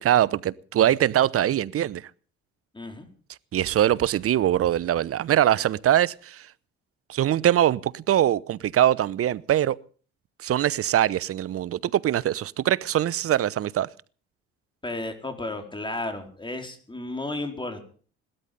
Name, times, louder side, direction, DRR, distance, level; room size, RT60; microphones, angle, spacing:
voice 1, 0.0-2.1 3.5-6.5 7.1-9.8 10.4-13.9, right 11 dB, 50° right, 0.8 m, -22 dB
voice 2, 2.7-3.1 14.8-17.8, left 2 dB, 15° left, 4.4 m, -33 dB
18.0 x 13.0 x 5.3 m
supercardioid pair, 70°, 30 cm